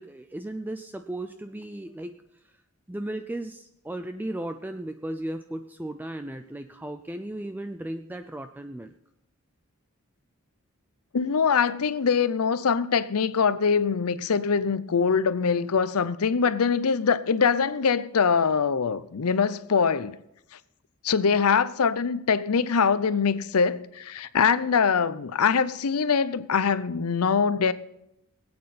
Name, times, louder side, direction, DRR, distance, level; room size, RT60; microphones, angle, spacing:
voice 1, 0.0-2.1 2.4-2.5 2.9-8.9, right 1 dB, 10° right, 0.4 m, -35 dB
voice 2, 11.1-20.2 21.0-27.7, left 6 dB, 80° left, 0.6 m, -23 dB
20.0 x 8.6 x 4.2 m
head